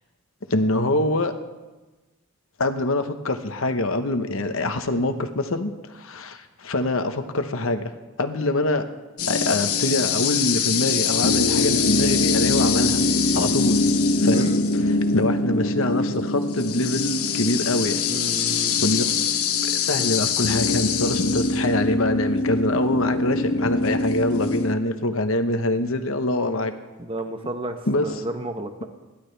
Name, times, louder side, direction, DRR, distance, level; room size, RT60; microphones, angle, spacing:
voice 1, 0.5-1.3 2.6-7.9 8.2-8.9 9.3-13.0 13.3-13.8 14.2-18.0 18.8-19.0 19.6-26.7 27.9-28.1, left 2 dB, 65° left, 7 dB, 1.2 m, -24 dB
sound 1, 9.2-24.8, left 4 dB, 85° left, 1.1 m, -23 dB
voice 2, 14.2-14.6 18.0-18.8 20.0-20.1 27.0-28.9, right 1 dB, 25° right, 6 dB, 0.9 m, -32 dB
30.0 x 11.5 x 3.4 m, 1.2 s
head